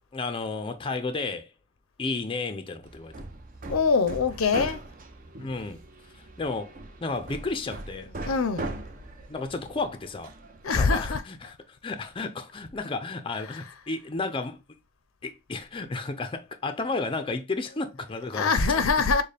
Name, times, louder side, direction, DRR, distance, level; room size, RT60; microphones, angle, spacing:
voice 1, 0.1-1.5 2.0-3.1 5.4-5.8 6.1-8.1 9.3-10.3 10.7-14.6 15.2-18.5, left 3 dB, 25° left, 0.5 m, -32 dB
Hammer, 2.8-10.7, right 2 dB, 40° right, 0.7 m, -40 dB
voice 2, 3.7-4.8 8.2-8.9 10.6-11.2 13.5-13.6 18.3-19.2, left 4 dB, 70° left, 0.6 m, -24 dB
6.5 x 2.2 x 3.3 m
head